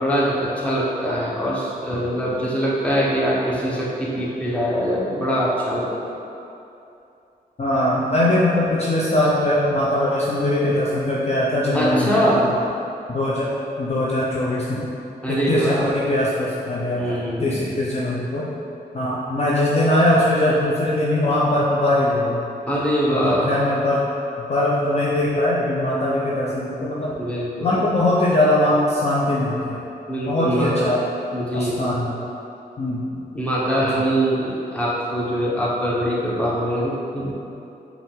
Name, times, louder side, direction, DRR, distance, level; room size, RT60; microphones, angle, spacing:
voice 1, 0.0-5.9 11.7-12.4 15.2-15.9 16.9-17.6 22.7-23.5 27.2-27.7 30.1-30.7 31.3-32.0 33.3-37.3, equal, 5° left, -7 dB, 1.1 m, -23 dB
voice 2, 7.6-12.3 13.1-14.8 15.3-18.5 18.9-22.4 23.1-24.0 24.5-27.1 27.6-29.8 30.3-31.0 31.5-32.2 32.8-33.1 34.0-34.1, left 1 dB, 40° left, -6 dB, 0.6 m, -21 dB
5.4 x 2.6 x 3.6 m, 2.7 s
cardioid pair, 65°, 17 cm